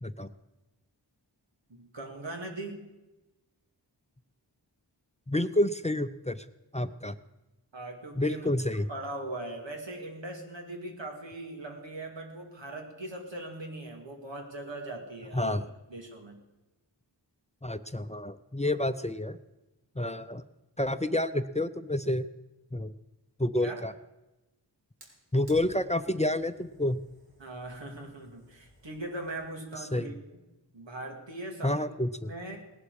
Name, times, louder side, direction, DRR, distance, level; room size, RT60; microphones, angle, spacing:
voice 1, 0.0-0.3 5.3-6.4 6.7-7.1 8.2-8.9 15.3-15.6 17.6-19.4 20.0-20.4 20.8-22.3 22.7-22.9 23.4-23.9 25.3-27.0 29.9-30.1 31.6-32.3, left 1 dB, 15° left, 11 dB, 0.5 m, -29 dB
voice 2, 1.7-2.9 7.7-8.5 8.8-15.6 15.9-16.4 20.0-20.2 23.6-23.8 27.4-30.1 30.7-31.9 32.2-32.6, right 2 dB, 85° right, 2 dB, 2.4 m, -40 dB
Fire, 25.0-30.0, equal, 55° right, 4.1 m, -57 dB
18.5 x 11.0 x 4.9 m, 1.0 s
wide cardioid pair, 45°, 43 cm